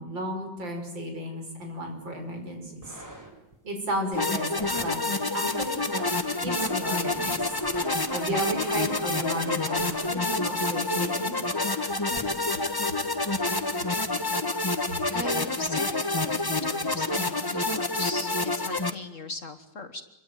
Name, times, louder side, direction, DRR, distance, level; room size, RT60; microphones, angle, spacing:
voice 1, 0.0-3.0 3.6-5.0 5.3-6.0 6.4-7.5 8.1-11.4, right 1 dB, 80° right, 3 dB, 6.4 m, -34 dB
sound 1, 2.6-3.5 4.6-4.9 5.5-5.6 6.2-9.2 9.8-10.1 11.0-11.1 12.1-12.5 13.1-13.2, equal, 10° right, 6.2 m, -45 dB
sound 2, 4.1-18.9, left 2 dB, 15° left, 1.0 m, -28 dB
voice 2, 15.1-20.0, left 2 dB, 45° left, 8 dB, 1.8 m, -38 dB
27.0 x 24.0 x 9.3 m, 0.89 s
omnidirectional pair, 2.0 m